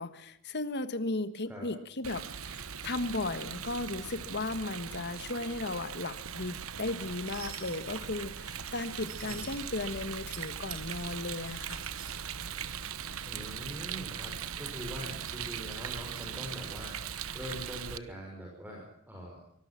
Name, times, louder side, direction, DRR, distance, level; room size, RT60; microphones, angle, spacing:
voice 1, 0.0-11.8, left 2 dB, 50° left, 12 dB, 1.6 m, -36 dB
Rain, 2.0-18.0, right 8 dB, 65° right, 1.1 m, -40 dB
sound 1, 6.9-7.8 8.5-9.6 10.1-10.4 10.7-13.3, right 7 dB, 45° right, 4.2 m, -50 dB
voice 2, 13.2-14.3 14.6-19.4, equal, 10° right, -2 dB, 5.8 m, -43 dB
24.5 x 19.0 x 6.0 m, 0.74 s
head